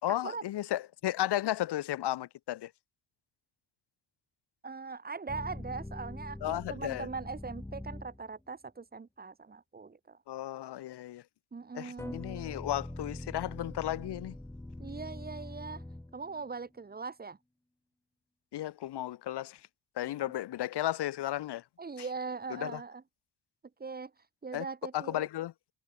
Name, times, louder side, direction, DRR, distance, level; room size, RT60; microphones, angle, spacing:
voice 1, 0.0-2.7 6.4-7.1 10.3-11.2 11.7-14.4 18.5-19.6 20.0-21.6 22.5-22.8 24.5-24.6 24.9-25.5, left 13 dB, 85° left, 4.4 m, -34 dB
voice 2, 4.6-10.2 11.5-12.2 14.8-15.8 16.1-17.4 20.0-20.3 21.8-23.0 23.8-24.1 24.4-25.3, right 4 dB, 25° right, 3.4 m, -41 dB
sound 1, 5.3-8.4 12.0-16.6, left 1 dB, 5° left, 3.9 m, -43 dB
cardioid pair, 155°, 39 cm